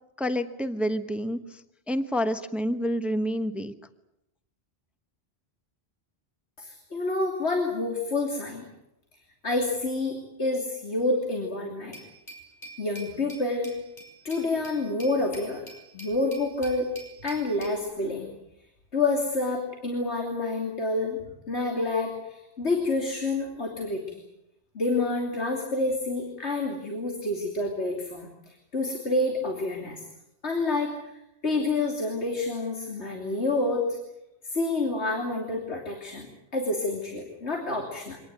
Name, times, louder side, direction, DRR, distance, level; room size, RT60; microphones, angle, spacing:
voice 1, 0.2-1.6 1.9-3.7, equal, ahead, 10 dB, 1.1 m, -28 dB
voice 2, 6.6-8.7 9.4-12.0 12.8-13.7 14.3-15.6 15.9-16.9 17.2-18.3 18.9-21.2 21.5-24.2 24.8-30.0 30.4-30.9 31.4-34.0 34.4-36.3 36.5-38.2, left 2 dB, 85° left, 2 dB, 3.3 m, -28 dB
Glass, 11.9-17.8, right 1 dB, 40° left, 6.4 m, -47 dB
25.0 x 18.5 x 9.4 m, 0.85 s
omnidirectional pair, 1.1 m